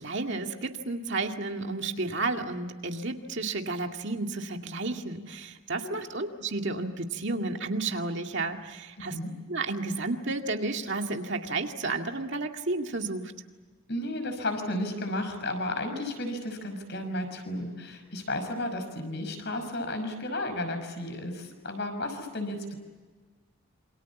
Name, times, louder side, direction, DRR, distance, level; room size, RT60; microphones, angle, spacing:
voice 1, 0.0-9.2 9.5-13.3, right 3 dB, 55° right, 4 dB, 2.2 m, -32 dB
voice 2, 9.0-9.3 13.9-22.7, left 1 dB, 50° left, 6 dB, 5.8 m, -33 dB
28.0 x 26.5 x 7.2 m, 1.3 s
head